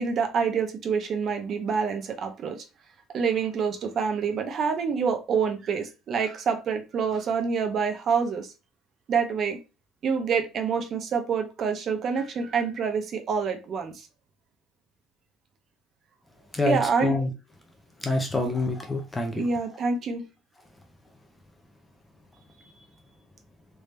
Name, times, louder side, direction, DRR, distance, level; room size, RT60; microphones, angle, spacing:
voice 1, 0.0-2.6 3.1-8.5 9.1-9.6 10.0-14.1 16.6-17.1 19.3-20.2, right 6 dB, 40° right, 0.7 m, -27 dB
voice 2, 16.5-17.3 18.0-19.5, left 2 dB, 10° left, 0.6 m, -27 dB
3.4 x 2.7 x 3.3 m
cardioid pair, 150°, 0 cm